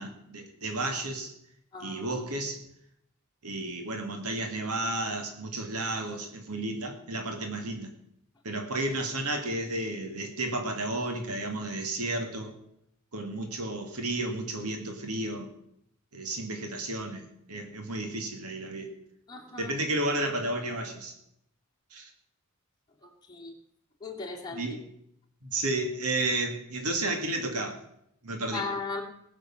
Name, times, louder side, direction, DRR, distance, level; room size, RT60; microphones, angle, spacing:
voice 1, 0.0-1.3 1.8-2.6 3.4-7.9 8.4-12.5 13.1-15.5 16.1-18.9 19.6-21.1 21.9-22.1 24.5-24.9 25.4-27.8 28.2-28.7, right 2 dB, 80° right, 4 dB, 2.1 m, -32 dB
voice 2, 1.7-2.2 19.3-19.7 23.3-23.5 24.0-24.6 28.5-29.0, left 4 dB, 20° left, -1 dB, 2.6 m, -36 dB
19.0 x 6.6 x 7.2 m, 0.74 s
head